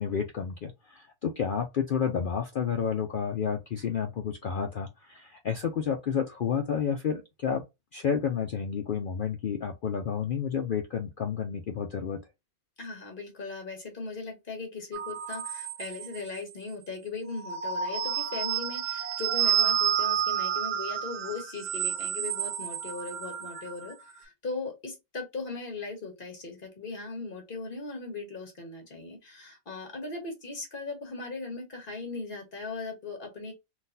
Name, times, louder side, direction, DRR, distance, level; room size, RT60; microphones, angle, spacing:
voice 1, 0.0-7.6 7.9-12.2, left 7 dB, 80° left, 0.4 m, -30 dB
voice 2, 12.8-33.5, left 3 dB, 40° left, 1.6 m, -38 dB
sound 1, 14.9-16.4 17.3-23.9, right 9 dB, 70° right, 1.0 m, -30 dB
3.9 x 2.5 x 2.6 m
omnidirectional pair, 1.5 m